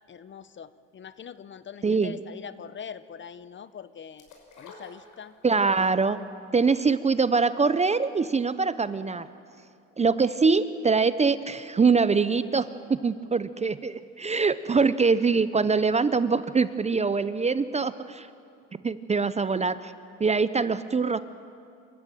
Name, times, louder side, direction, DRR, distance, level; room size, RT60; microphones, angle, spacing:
voice 1, 0.1-4.3 4.6-5.3, left 7 dB, 30° left, 15 dB, 0.8 m, -43 dB
voice 2, 1.8-2.2 5.4-6.2 6.5-9.3 10.0-18.3 18.8-19.9 20.2-21.2, right 4 dB, 20° right, 14 dB, 0.7 m, -24 dB
sound 1, 4.2-5.7 6.1-6.2, left 3 dB, 55° left, 5.9 m, -49 dB
26.5 x 14.5 x 9.0 m, 2.5 s
supercardioid pair, 85°, 36 cm